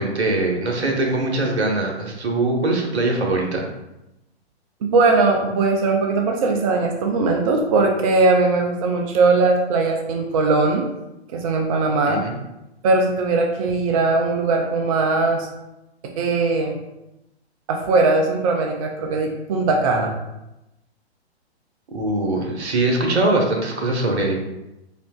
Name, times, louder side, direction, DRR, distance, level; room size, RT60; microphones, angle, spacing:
voice 1, 0.0-3.7 12.0-12.4 21.9-24.4, right 2 dB, 80° right, 0 dB, 1.1 m, -22 dB
voice 2, 4.8-10.8 11.3-12.2 12.8-15.5 16.2-16.8 17.7-20.1, right 3 dB, 35° right, 2 dB, 0.5 m, -19 dB
4.3 x 3.6 x 2.3 m, 0.93 s
figure-of-eight pair, 125°, 33 cm